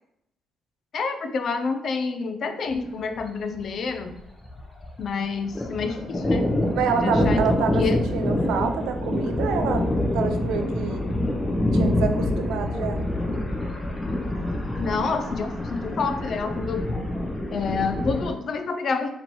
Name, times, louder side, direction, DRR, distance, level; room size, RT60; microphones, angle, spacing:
voice 1, 0.9-4.2 5.0-6.5 7.0-8.0 14.8-16.9 17.5-19.1, left 4 dB, 60° left, 8 dB, 0.4 m, -28 dB
Thunder, 2.7-2.9 3.2-3.3 3.6-5.1 5.3-18.3, left 1 dB, 20° left, 0.8 m, -26 dB
voice 2, 6.7-11.1 11.5-13.1, right 6 dB, 90° right, 7 dB, 0.4 m, -27 dB
3.0 x 2.9 x 4.2 m, 0.78 s
cardioid pair, 90°, 0 cm